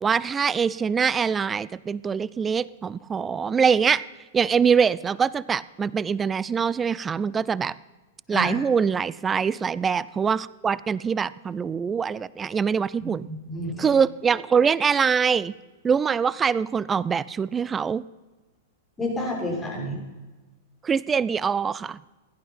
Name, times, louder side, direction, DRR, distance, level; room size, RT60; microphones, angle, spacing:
voice 1, 0.0-4.0 4.3-7.8 8.3-13.3 13.8-15.5 15.8-18.0 20.8-22.0, right 6 dB, 20° right, 20 dB, 0.4 m, -23 dB
voice 2, 13.0-13.9 19.0-20.0, left 1 dB, 15° left, -2 dB, 6.3 m, -30 dB
16.0 x 12.0 x 5.7 m, 1.2 s
hypercardioid pair, 110°, 0 cm